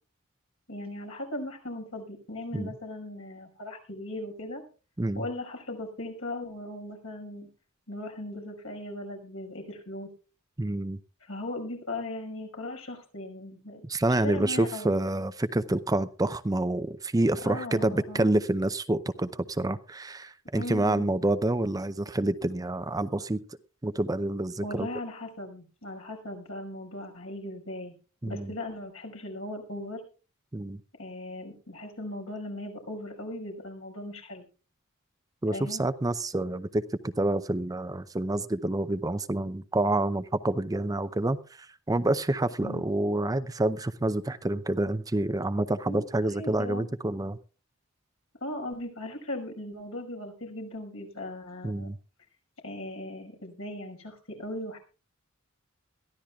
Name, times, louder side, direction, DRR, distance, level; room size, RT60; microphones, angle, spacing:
voice 1, 0.7-4.6 5.2-7.5 7.9-10.1 11.2-13.8 14.2-14.9 17.4-18.3 20.5-21.1 24.6-27.9 28.2-30.0 31.0-34.5 35.5-35.8 42.6-42.8 45.9-46.0 46.3-46.9 48.4-51.9 52.6-54.8, left 1 dB, 80° left, 2 dB, 5.6 m, -38 dB
voice 2, 10.6-11.0 13.8-23.4 23.8-24.9 28.2-28.5 30.5-30.8 35.4-47.4 51.6-52.0, right 1 dB, 15° right, 12 dB, 0.6 m, -28 dB
22.0 x 14.5 x 2.4 m, 0.35 s
head